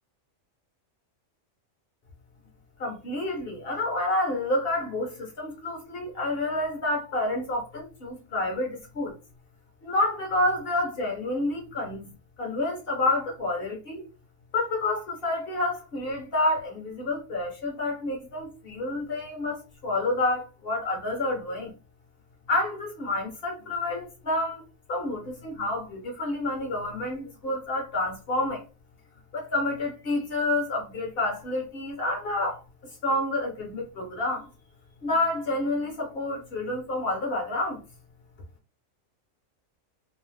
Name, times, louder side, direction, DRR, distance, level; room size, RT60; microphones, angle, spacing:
voice 1, 2.8-9.2 9.8-12.1 12.4-14.0 14.5-21.7 22.5-24.6 24.9-28.6 29.3-32.6 33.0-34.5 35.0-37.8, left 2 dB, 55° left, 0.9 m, -29 dB
2.6 x 2.0 x 3.2 m
omnidirectional pair, 1.4 m